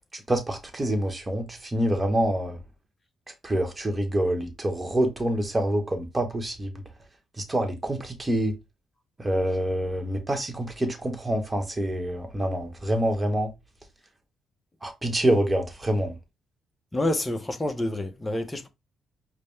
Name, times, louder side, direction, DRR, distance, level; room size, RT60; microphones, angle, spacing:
voice 1, 0.3-2.6 3.4-6.7 7.5-8.5 9.2-13.5 14.8-16.1, right 1 dB, 20° right, 1.1 m, -26 dB
voice 2, 16.9-18.7, left 1 dB, 15° left, 0.8 m, -28 dB
5.0 x 2.2 x 3.2 m
cardioid pair, 90°, 0 cm